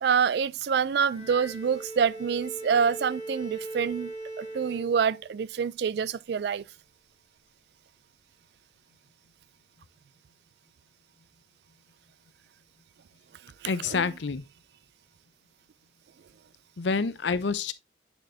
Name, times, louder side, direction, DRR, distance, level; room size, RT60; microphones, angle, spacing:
voice 1, 0.0-6.6 13.6-14.1, right 6 dB, 60° right, 0.3 m, -27 dB
Bowed string instrument, 1.1-5.5, right 2 dB, 35° left, 2.5 m, -40 dB
voice 2, 13.6-14.4 16.8-17.7, left 5 dB, 75° left, 0.6 m, -28 dB
9.7 x 4.3 x 2.6 m
head